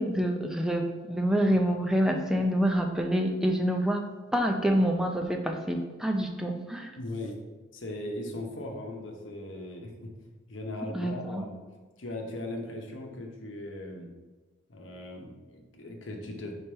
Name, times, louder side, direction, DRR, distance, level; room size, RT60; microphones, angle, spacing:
voice 1, 0.0-4.1 4.3-6.9 10.9-11.5, equal, 5° right, 3 dB, 0.5 m, -27 dB
voice 2, 7.0-7.4 7.7-10.1 10.5-11.6 12.0-14.1 14.7-16.5, left 1 dB, 80° left, 2 dB, 0.9 m, -38 dB
5.2 x 4.3 x 4.4 m, 1.3 s
head